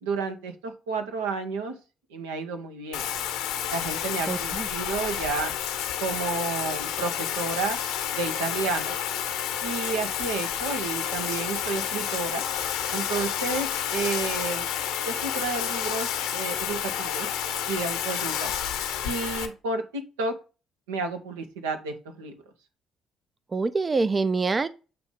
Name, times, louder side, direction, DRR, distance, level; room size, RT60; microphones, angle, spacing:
voice 1, 0.0-1.7 2.1-3.0 3.7-5.5 6.0-7.8 8.1-8.9 9.6-12.4 12.9-14.7 15.1-17.3 17.7-18.5 19.0-20.3 20.9-22.3, right 4 dB, 85° right, 0.9 m, -31 dB
Bathtub (filling or washing), 2.9-19.5, left 9 dB, 80° left, 0.9 m, -30 dB
voice 2, 4.3-4.7 23.5-24.7, right 4 dB, 35° right, 0.4 m, -25 dB
7.8 x 2.8 x 5.0 m
hypercardioid pair, 50°, 0 cm